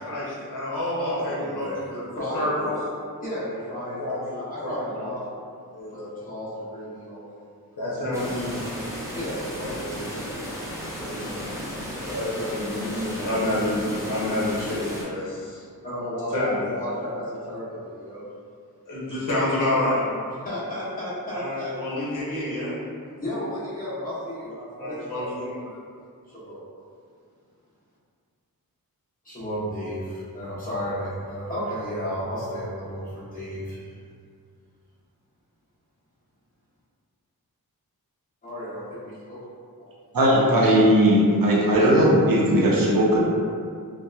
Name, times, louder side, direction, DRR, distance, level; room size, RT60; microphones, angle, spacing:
voice 1, 0.0-2.0 2.3-2.7 4.0-5.1 5.7-6.1 7.8-8.8 11.1-11.5 12.0-15.6 16.3-16.7 18.9-20.0 21.3-22.7 24.5-25.5, left 1 dB, 55° left, -8 dB, 0.8 m, -28 dB
voice 2, 1.1-1.8 2.1-2.7 3.2-5.2 5.9-7.5 7.8-8.2 9.1-10.6 11.0-12.2 13.1-13.3 15.8-16.3 16.6-18.2 20.3-21.8 23.2-25.2 25.6-25.8 26.2-26.6 29.2-33.9 38.4-39.4 39.8-39.9, equal, 25° left, -11 dB, 0.9 m, -34 dB
sound 1, 8.1-15.0, equal, 10° right, 0.6 m, -34 dB
voice 3, 40.1-43.2, equal, 65° right, -5 dB, 0.6 m, -18 dB
2.7 x 2.2 x 2.3 m, 2.2 s
wide cardioid pair, 65°, 37 cm